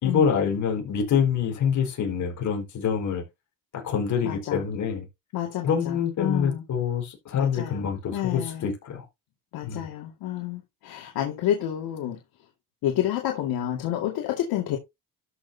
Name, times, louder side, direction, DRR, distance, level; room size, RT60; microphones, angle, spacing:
voice 1, 0.0-3.2 3.7-5.1 5.6-9.0 9.6-9.9, left 7 dB, 55° left, 4.4 m, -26 dB
voice 2, 4.2-4.6 5.3-6.6 7.3-8.7 9.5-12.2 12.8-14.8, left 11 dB, 80° left, 2.1 m, -29 dB
12.5 x 6.5 x 2.8 m
cardioid pair, 125°, 36 cm